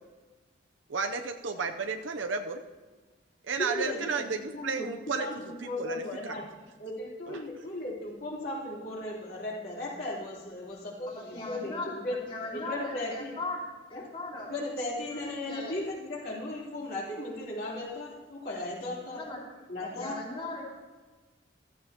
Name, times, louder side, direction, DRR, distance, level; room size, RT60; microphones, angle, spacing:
voice 1, 0.9-2.6 3.5-5.3 5.6-6.4 7.3-7.4, right 4 dB, 80° right, 5 dB, 0.7 m, -33 dB
voice 2, 3.6-4.3 4.5-4.9 5.2-6.5 6.8-12.2 12.5-13.4 13.9-14.1 14.5-19.2 19.7-20.2, left 1 dB, 50° left, -4 dB, 3.4 m, -36 dB
voice 3, 11.1-11.9 12.2-13.6 13.9-15.8 19.1-19.4 19.8-20.6, left 2 dB, 30° left, -4 dB, 3.2 m, -39 dB
15.5 x 14.0 x 2.9 m, 1.3 s
head